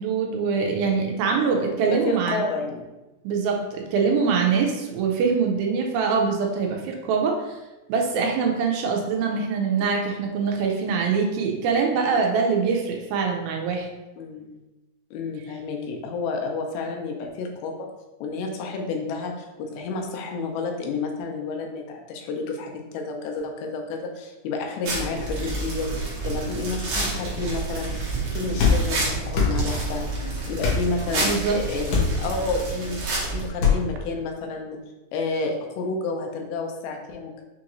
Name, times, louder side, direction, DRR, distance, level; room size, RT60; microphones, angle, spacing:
voice 1, 0.0-2.4 3.2-7.6 7.9-13.9 31.2-31.6, right 5 dB, 80° right, 1 dB, 2.3 m, -23 dB
voice 2, 1.9-2.8 14.2-14.5 15.1-17.9 18.2-27.9 28.3-30.1 30.5-33.0 33.3-34.8 35.1-37.4, left 3 dB, 90° left, 3 dB, 2.6 m, -30 dB
sound 1, 24.8-33.5, right 3 dB, 65° right, 1.7 m, -29 dB
sound 2, 28.6-28.8 29.3-29.6 30.6-30.8 31.9-32.1 33.6-33.8, left 5 dB, 70° left, 2.2 m, -20 dB
6.1 x 2.4 x 3.0 m, 1.0 s
omnidirectional pair, 4.3 m